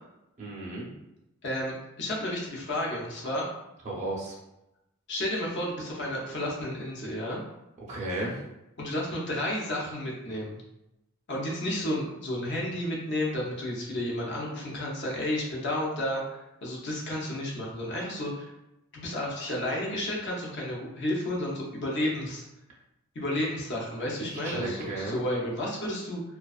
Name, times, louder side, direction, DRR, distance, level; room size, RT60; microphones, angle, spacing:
voice 1, 0.4-0.9 3.8-4.3 7.9-8.3 24.2-25.1, right 2 dB, 30° right, -6 dB, 0.5 m, -34 dB
voice 2, 1.4-3.5 5.1-7.4 8.8-10.6 11.3-18.5 18.9-22.4 23.1-26.2, left 1 dB, 50° left, -3 dB, 0.6 m, -32 dB
2.4 x 2.3 x 2.4 m, 0.90 s
head